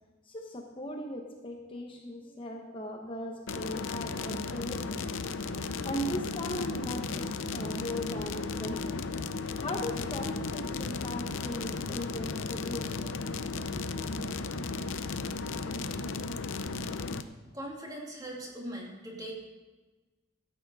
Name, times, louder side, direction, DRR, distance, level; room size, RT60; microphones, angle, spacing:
voice 1, 0.2-5.1 5.8-9.0 9.5-13.1 13.7-13.9, left 1 dB, 25° left, 2 dB, 0.9 m, -38 dB
sound 1, 3.5-17.2, left 4 dB, 75° left, 0.6 m, -35 dB
voice 2, 17.5-19.3, right 1 dB, 20° right, -2 dB, 2.4 m, -40 dB
13.5 x 8.5 x 5.4 m, 1.2 s
head